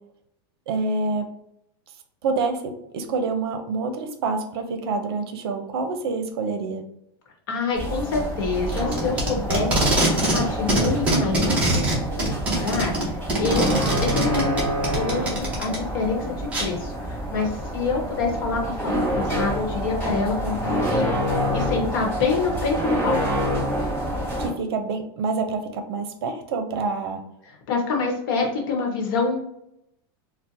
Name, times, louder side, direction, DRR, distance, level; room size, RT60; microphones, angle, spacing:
voice 1, 0.7-1.3 2.2-6.8 13.7-13.9 24.4-27.2, right 4 dB, 75° right, 7 dB, 0.6 m, -27 dB
voice 2, 7.5-12.4 12.6-13.7 14.0-14.7 14.9-23.2 27.7-29.6, left 4 dB, 55° left, 1 dB, 1.0 m, -27 dB
sound 1, 7.7-24.5, equal, 10° left, 1.0 m, -27 dB
Packing tape duct tape, 8.7-10.4 10.7-15.8 16.5-16.6, right 1 dB, 10° right, 0.7 m, -23 dB
4.0 x 2.1 x 2.5 m, 0.77 s
supercardioid pair, 175°, 13 cm